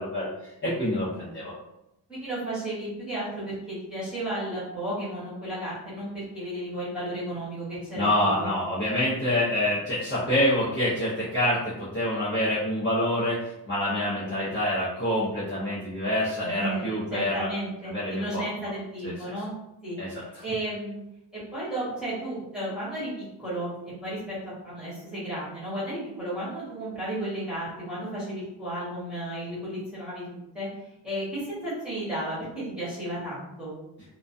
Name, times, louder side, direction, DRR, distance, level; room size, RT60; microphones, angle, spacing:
voice 1, 0.0-1.5 8.0-17.5 17.9-18.4 19.0-19.1 20.0-20.1 20.3-20.4, left 1 dB, 25° left, -10 dB, 0.6 m, -26 dB
voice 2, 2.1-8.5 16.5-16.8 17.1-19.5 19.8-20.0 20.4-21.0 21.3-23.7 24.0-24.4 24.6-30.7 31.0-33.7, right 1 dB, ahead, -10 dB, 1.0 m, -33 dB
2.2 x 2.2 x 2.5 m, 0.87 s
wide cardioid pair, 175°, 41 cm